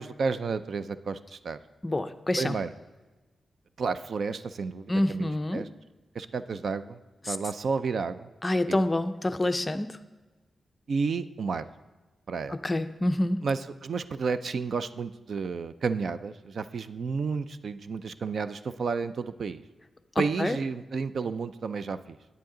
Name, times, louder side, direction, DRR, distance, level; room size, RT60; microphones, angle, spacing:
voice 1, 0.0-1.6 2.4-2.7 3.8-5.7 6.1-7.0 7.3-8.3 8.7-8.8 10.9-11.6 12.3-12.6 13.4-19.6 20.2-22.2, right 5 dB, 60° right, 13 dB, 0.4 m, -31 dB
voice 2, 1.8-2.5 4.9-5.6 7.3-7.4 8.4-9.9 12.5-13.4 20.4-20.6, left 1 dB, 20° left, 10 dB, 0.5 m, -27 dB
10.5 x 9.3 x 3.8 m, 1.2 s
wide cardioid pair, 120°, 0 cm